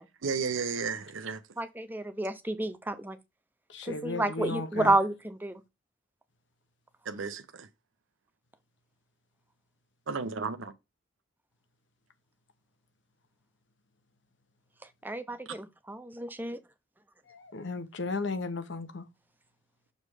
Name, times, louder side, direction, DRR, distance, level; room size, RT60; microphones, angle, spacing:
voice 1, 0.2-1.4 4.7-4.9 7.1-7.7 10.1-10.7, right 5 dB, 85° right, 0.7 m, -33 dB
voice 2, 1.6-3.2 3.9-5.6 15.0-16.6, right 2 dB, 10° right, 0.5 m, -30 dB
voice 3, 3.7-5.0 17.3-19.1, left 3 dB, 70° left, 0.9 m, -35 dB
6.6 x 3.2 x 4.9 m
head